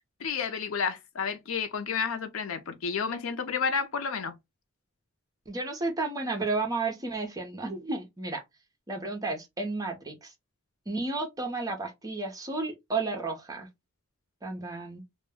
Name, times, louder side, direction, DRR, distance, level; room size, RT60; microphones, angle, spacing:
voice 1, 0.2-4.3, left 6 dB, 75° left, 0.5 m, -31 dB
voice 2, 5.5-8.4 8.9-10.3 10.9-13.7 14.4-15.0, right 3 dB, 20° right, 0.7 m, -32 dB
2.2 x 2.2 x 3.3 m
head